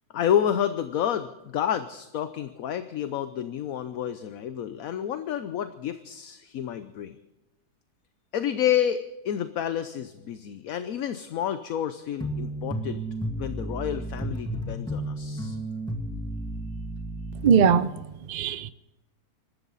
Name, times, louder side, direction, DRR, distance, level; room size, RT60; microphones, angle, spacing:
voice 1, 0.1-7.2 8.3-13.0 13.3-15.6, left 9 dB, 65° left, 1.2 m, -29 dB
sound 1, 12.2-17.5, right 1 dB, 5° left, 2.0 m, -32 dB
voice 2, 17.4-17.9 18.3-18.7, right 7 dB, 75° right, 0.4 m, -20 dB
24.5 x 13.5 x 4.0 m
omnidirectional pair, 1.7 m